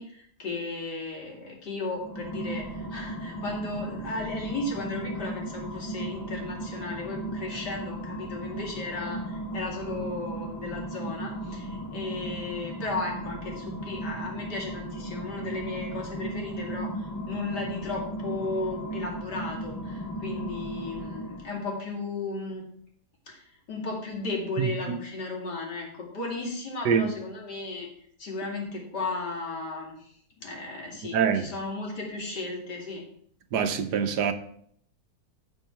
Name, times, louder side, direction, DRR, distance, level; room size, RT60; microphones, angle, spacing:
voice 1, 0.0-22.6 23.3-27.9 28.2-30.1 30.4-33.0, left 3 dB, 75° left, 2.9 m, -35 dB
sound 1, 1.9-21.7, right 1 dB, 25° left, 0.4 m, -36 dB
voice 2, 24.6-25.0 26.8-27.1 31.0-31.5 33.5-34.3, right 7 dB, 80° right, 1.4 m, -25 dB
14.0 x 4.7 x 4.5 m
omnidirectional pair, 1.8 m